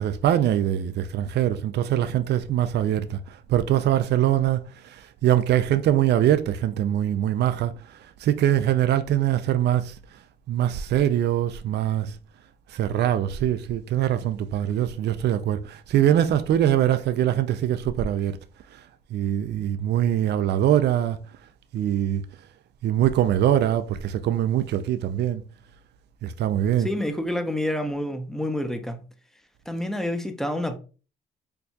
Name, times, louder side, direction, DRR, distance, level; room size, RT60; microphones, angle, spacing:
voice 1, 0.0-9.9 10.5-12.2 12.7-18.4 18.7-18.8 19.1-21.2 21.7-22.2 22.8-25.4 26.2-26.9, right 11 dB, 60° right, 0.4 m, -23 dB
voice 2, 26.8-29.0 29.7-30.8, left 1 dB, ahead, 0.5 m, -28 dB
4.4 x 2.3 x 2.7 m
cardioid pair, 90°, 20 cm